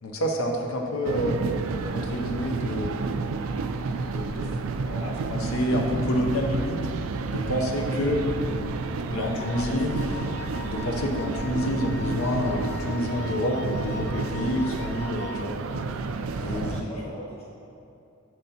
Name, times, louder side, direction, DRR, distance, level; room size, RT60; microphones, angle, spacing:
voice 1, 0.0-1.4 1.9-3.0 4.0-4.5 4.8-6.9 7.3-8.2 9.1-9.9 10.6-15.6 16.4-16.8, equal, 85° left, 1 dB, 0.7 m, -28 dB
sound 1, 1.0-16.8, right 4 dB, 75° right, 0.3 m, -30 dB
voice 2, 7.4-8.2 9.0-10.4 16.4-17.4, equal, 30° left, -6 dB, 1.0 m, -41 dB
Wind instrument woodwind instrument, 9.4-15.5, left 7 dB, 50° left, 0.4 m, -41 dB
8.1 x 7.4 x 2.8 m, 2.6 s
head